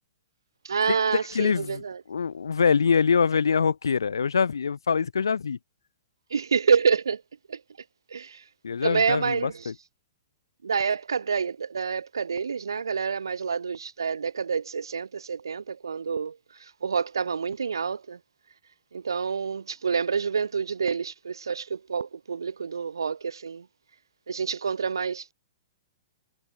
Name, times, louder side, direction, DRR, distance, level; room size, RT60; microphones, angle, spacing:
voice 1, 0.6-2.0 6.3-7.2 7.5-7.6 8.1-8.4 8.8-9.7 10.6-18.2 18.9-23.6 24.3-25.3, right 6 dB, 80° right, 2.4 m, -28 dB
voice 2, 1.3-1.8 2.1-5.6 8.6-9.7, left 6 dB, 80° left, 1.2 m, -24 dB
hypercardioid pair, 120°, 2 cm